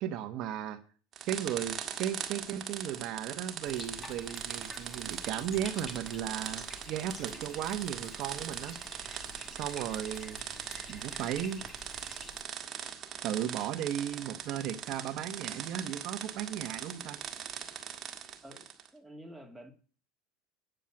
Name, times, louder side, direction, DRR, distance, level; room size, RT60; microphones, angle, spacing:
voice 1, 0.0-0.8 1.3-8.8 9.5-10.4 10.9-11.6 13.2-17.2, right 10 dB, 50° right, 8 dB, 1.1 m, -35 dB
sound 1, 1.1-18.9, right 8 dB, 35° right, 1.6 m, -41 dB
Bathtub (filling or washing), 3.6-12.4, left 2 dB, 20° left, 2.0 m, -49 dB
voice 2, 18.4-19.7, equal, ahead, 1 dB, 2.3 m, -50 dB
9.1 x 7.3 x 8.8 m, 0.40 s
supercardioid pair, 130°, 0 cm